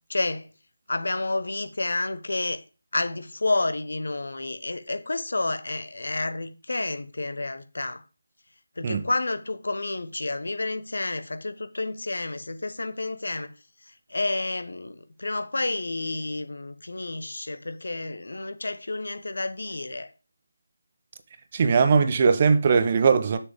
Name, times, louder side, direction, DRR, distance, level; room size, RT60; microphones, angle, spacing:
voice 1, 0.1-0.5 0.9-2.6 2.9-8.0 8.8-13.5 13.9-20.1, left 2 dB, 65° left, 1.0 m, -30 dB
voice 2, 21.5-23.4, right 5 dB, 30° right, 0.8 m, -20 dB
7.4 x 6.6 x 3.6 m
figure-of-eight pair, 160°, 0 cm